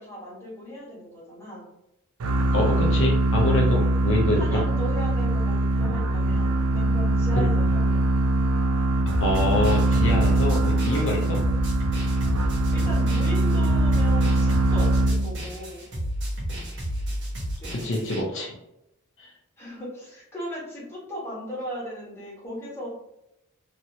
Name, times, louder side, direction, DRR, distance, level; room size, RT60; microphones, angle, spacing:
voice 1, 0.0-1.7 4.4-8.1 10.9-11.0 12.7-15.9 17.6-18.0 19.6-22.9, equal, 10° left, -7 dB, 1.4 m, -37 dB
sound 1, 2.2-15.6, right 2 dB, 70° right, 0.4 m, -22 dB
voice 2, 2.5-4.6 7.3-7.4 9.2-11.4 17.7-18.6 19.2-19.3, left 2 dB, 60° left, -1 dB, 0.6 m, -26 dB
sound 2, 9.1-18.2, equal, 55° right, 1.1 m, -32 dB
2.9 x 2.8 x 2.6 m, 0.83 s
head